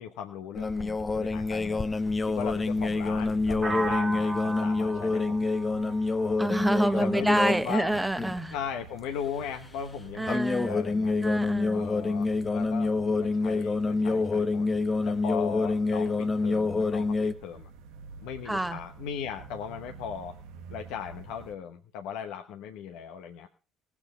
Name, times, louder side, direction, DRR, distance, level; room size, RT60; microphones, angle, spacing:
voice 1, 0.0-5.4 6.9-8.0 8.5-11.2 11.7-14.7 15.1-17.7 18.2-20.4 20.7-23.5, left 8 dB, 70° left, 5 dB, 1.0 m, -38 dB
sound 1, 0.5-7.6 7.9-8.4 10.3-17.3, left 3 dB, 25° left, 0.9 m, -27 dB
sound 2, 2.6-21.5, right 4 dB, 70° right, 1.1 m, -48 dB
sound 3, 3.6-7.5, right 3 dB, 30° right, 0.8 m, -36 dB
voice 2, 6.4-8.5 10.2-10.8 11.2-11.8 18.5-18.8, right 1 dB, 10° right, 9 dB, 1.4 m, -27 dB
18.0 x 7.3 x 5.6 m, 0.35 s
hypercardioid pair, 55°, 0 cm